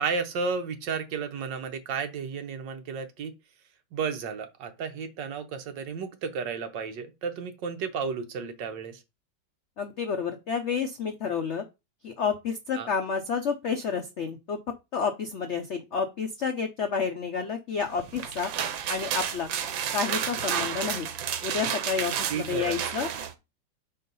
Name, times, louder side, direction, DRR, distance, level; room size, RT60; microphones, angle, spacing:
voice 1, 0.0-3.3 3.9-9.0 12.8-12.9 22.3-22.8, right 5 dB, 70° right, 1.5 m, -32 dB
voice 2, 9.8-11.6 12.0-14.6 14.9-18.5 18.9-19.5 19.9-21.1 21.4-23.1, left 6 dB, 70° left, 0.6 m, -30 dB
sound 1, 18.0-23.3, right 8 dB, 85° right, 1.5 m, -31 dB
4.6 x 3.9 x 5.3 m
omnidirectional pair, 2.1 m